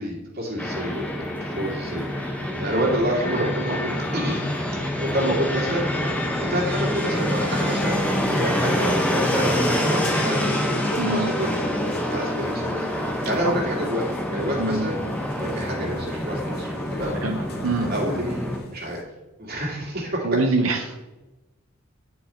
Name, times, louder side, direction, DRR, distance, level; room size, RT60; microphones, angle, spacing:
voice 1, 0.0-4.4 4.9-10.7 11.1-11.6 12.1-15.0 15.4-17.2 17.9-19.0 19.4-20.4, equal, 50° right, -2 dB, 2.3 m, -28 dB
Fixed-wing aircraft airplane, 0.6-18.6, left 1 dB, 10° left, 1.1 m, -26 dB
sound 1, 7.1-19.0, left 1 dB, 50° left, 1.0 m, -38 dB
voice 2, 11.0-11.3 14.6-14.9 17.2-17.9 20.2-21.0, right 2 dB, 90° right, 3 dB, 0.7 m, -24 dB
9.4 x 4.7 x 4.3 m, 1.1 s
head